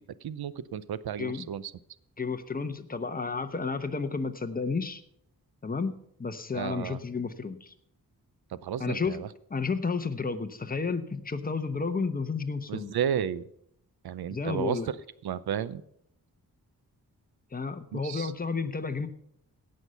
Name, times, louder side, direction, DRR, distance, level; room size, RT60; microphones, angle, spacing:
voice 1, 0.2-1.7 6.5-7.0 8.5-9.3 12.7-13.4 14.0-14.8 15.2-15.8 17.9-18.3, right 9 dB, 80° right, 16 dB, 0.7 m, -32 dB
voice 2, 2.2-5.0 5.6-7.7 8.8-9.2 9.5-12.9 14.3-14.9 17.5-19.1, left 4 dB, 25° left, 8 dB, 1.0 m, -32 dB
17.5 x 6.6 x 5.6 m, 0.71 s
wide cardioid pair, 110°, 37 cm